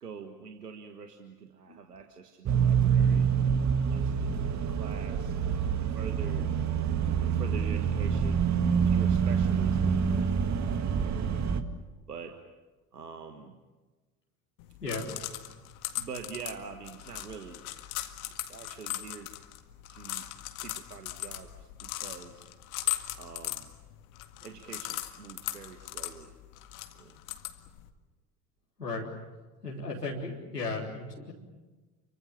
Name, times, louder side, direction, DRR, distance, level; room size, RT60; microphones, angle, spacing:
voice 1, 0.0-3.3 3.8-6.5 7.2-11.3 12.1-12.4 12.9-13.6 15.5-15.6 15.9-17.6 18.0-19.3 19.9-20.3 20.6-22.5 23.2-23.7 24.4-26.3 26.9-27.2, right 6 dB, 80° right, 6 dB, 1.6 m, -45 dB
sound 1, 2.5-11.6, right 7 dB, 35° right, 2.0 m, -26 dB
Pebbles in Bowl, 14.6-27.9, left 15 dB, 60° left, 2.0 m, -39 dB
voice 2, 29.6-31.3, left 3 dB, 90° left, -3 dB, 3.7 m, -35 dB
30.0 x 24.0 x 7.2 m, 1.3 s
figure-of-eight pair, 65°, 47 cm